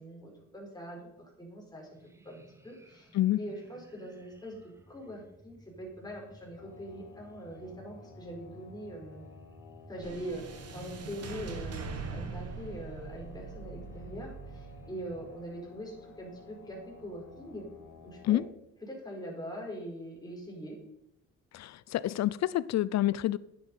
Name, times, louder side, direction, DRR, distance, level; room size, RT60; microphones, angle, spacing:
voice 1, 0.0-1.9 2.2-3.1 3.4-4.6 4.9-9.2 9.9-17.7 18.0-18.4 18.8-20.8, equal, 15° left, -1 dB, 4.8 m, -43 dB
sound 1, 1.9-15.4, right 1 dB, 10° right, 1.4 m, -56 dB
sound 2, 6.6-18.5, left 6 dB, 85° left, 1.3 m, -55 dB
sound 3, 10.0-18.4, right 5 dB, 55° right, 1.8 m, -44 dB
voice 2, 21.5-23.4, left 14 dB, 60° left, 19 dB, 0.6 m, -28 dB
10.0 x 9.5 x 5.6 m, 0.81 s
cardioid pair, 90°, 30 cm